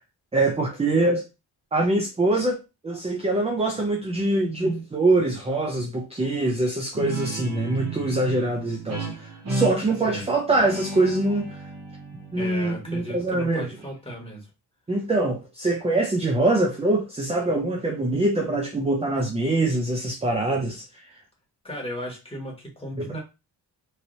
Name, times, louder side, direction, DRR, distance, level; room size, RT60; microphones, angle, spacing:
voice 1, 0.3-1.2 1.7-11.6 12.3-13.7 14.9-20.8 23.0-23.1, right 2 dB, 15° right, 0.5 m, -24 dB
Guitar, 6.9-14.1, right 2 dB, 40° right, 1.0 m, -34 dB
voice 2, 12.3-14.5 21.6-23.2, equal, 15° left, 1.5 m, -35 dB
3.2 x 2.7 x 2.7 m
cardioid pair, 120°, 41 cm